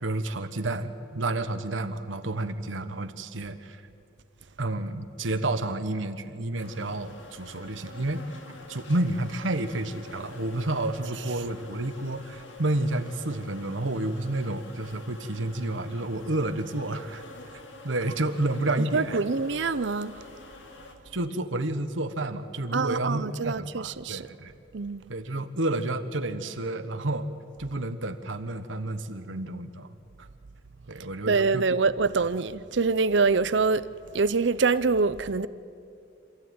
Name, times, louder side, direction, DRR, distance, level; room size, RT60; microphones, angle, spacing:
voice 1, 0.0-3.8 4.6-8.2 8.7-17.2 17.8-19.2 21.1-24.5 25.1-27.3 27.6-30.3 30.9-31.6, right 2 dB, 90° right, 1.3 m, -30 dB
sound 1, 6.5-20.9, left 2 dB, 80° left, 2.4 m, -47 dB
voice 2, 18.8-20.2 22.7-24.3 24.7-25.1 31.3-33.9 34.1-35.5, right 4 dB, 65° right, 0.7 m, -25 dB
26.5 x 14.5 x 9.5 m
head